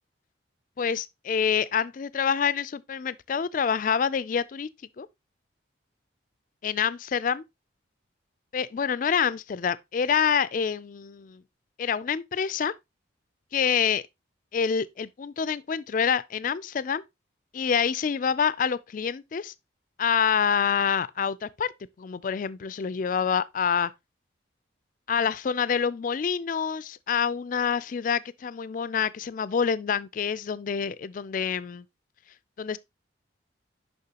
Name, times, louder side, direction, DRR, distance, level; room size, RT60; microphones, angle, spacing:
voice 1, 0.8-4.7 5.0-5.1 6.6-7.4 8.5-11.4 11.8-12.7 13.5-14.0 14.5-17.0 17.5-19.5 20.0-21.7 22.0-23.9 25.1-31.8 32.6-32.8, left 7 dB, 40° left, 0.3 m, -27 dB
6.6 x 5.5 x 2.8 m
head